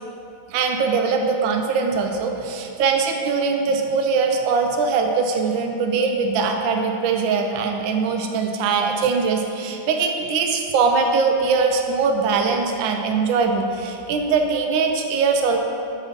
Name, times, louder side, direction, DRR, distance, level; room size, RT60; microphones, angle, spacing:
voice 1, 0.5-15.6, right 5 dB, 90° right, 3 dB, 1.3 m, -21 dB
4.9 x 4.0 x 5.6 m, 2.7 s
omnidirectional pair, 2.0 m